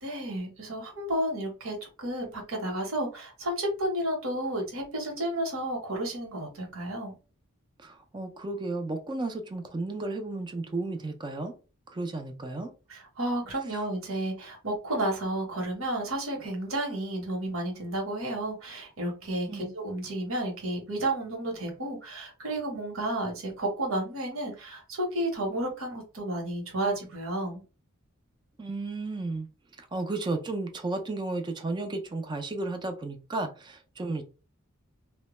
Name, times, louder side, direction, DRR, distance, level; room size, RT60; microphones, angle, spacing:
voice 1, 0.0-7.1 12.9-27.6, right 1 dB, 65° right, 1 dB, 1.0 m, -32 dB
voice 2, 7.8-11.5 11.9-12.7 19.5-19.8 28.6-29.5 29.8-34.2, right 2 dB, 20° right, 6 dB, 0.4 m, -33 dB
2.1 x 2.1 x 3.0 m, 0.33 s
head